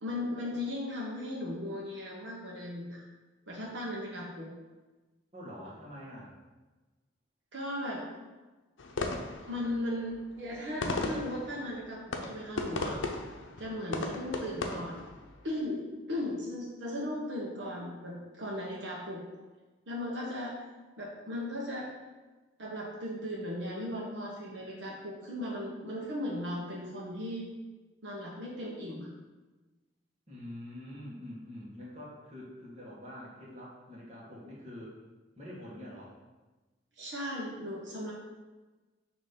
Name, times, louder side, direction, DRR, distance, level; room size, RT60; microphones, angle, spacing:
voice 1, 0.0-3.0 3.5-4.5 5.6-5.7 7.5-8.1 9.5-13.0 13.6-15.0 15.4-15.8 16.1-19.2 19.9-20.6 21.0-21.9 22.6-27.5 28.0-29.1 37.0-38.1, left 1 dB, 70° right, -4 dB, 1.1 m, -37 dB
voice 2, 5.3-6.3 30.3-34.9 35.4-36.2, left 1 dB, 35° right, -6 dB, 1.6 m, -45 dB
sound 1, 8.8-15.5, left 2 dB, 85° left, 0.6 m, -37 dB
6.3 x 3.0 x 5.2 m, 1.2 s
head